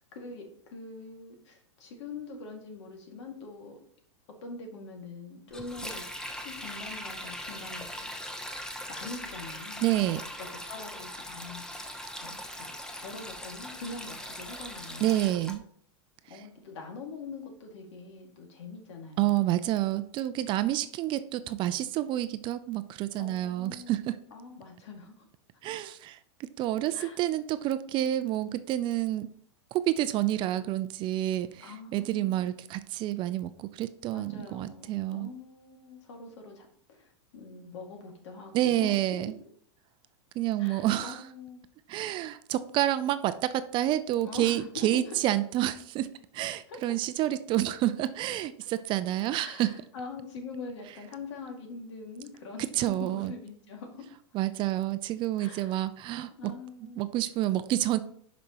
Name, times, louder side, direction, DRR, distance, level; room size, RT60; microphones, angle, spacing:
voice 1, 0.1-3.8 4.4-8.1 8.9-9.8 10.2-11.6 12.2-15.2 16.3-19.4 23.2-23.9 24.3-25.3 26.9-27.2 31.6-32.5 34.1-39.2 40.6-41.6 44.2-45.2 46.7-46.9 48.6-48.7 49.4-52.7 53.0-54.0 55.4-55.8 56.4-57.0, left 4 dB, 70° left, 2 dB, 2.2 m, -44 dB
Sink (filling or washing), 5.5-15.6, equal, 5° left, 0.7 m, -40 dB
voice 2, 9.8-10.2 15.0-15.6 16.3-16.4 19.2-24.2 25.6-29.3 29.7-35.3 38.5-39.3 40.4-41.2 41.9-49.7 52.8-53.3 54.3-56.5 57.0-58.0, right 13 dB, 30° right, 13 dB, 0.4 m, -29 dB
11.0 x 5.2 x 3.0 m, 0.64 s
hypercardioid pair, 130°, 15 cm